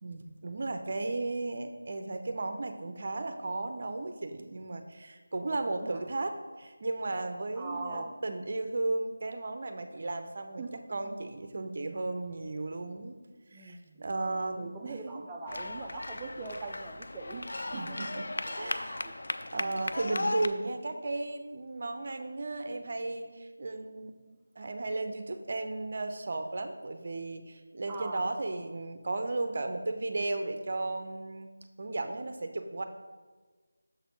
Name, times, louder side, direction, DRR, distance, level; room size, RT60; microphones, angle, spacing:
voice 1, 0.0-10.6 10.9-13.2 13.5-15.2 16.6-16.7 17.7-18.3 18.6-19.0 19.5-24.1 24.6-31.5 31.8-32.8, right 2 dB, 45° right, 7 dB, 0.6 m, -35 dB
voice 2, 5.4-6.0 7.5-8.1 10.6-11.1 13.5-17.5 17.9-18.0 18.5-18.7 19.0-19.1 27.9-28.3, right 3 dB, 15° right, -1 dB, 0.3 m, -42 dB
sound 1, 15.5-20.5, left 2 dB, 65° left, 0.4 m, -36 dB
6.7 x 4.1 x 5.4 m, 1.4 s
figure-of-eight pair, 170°, 0 cm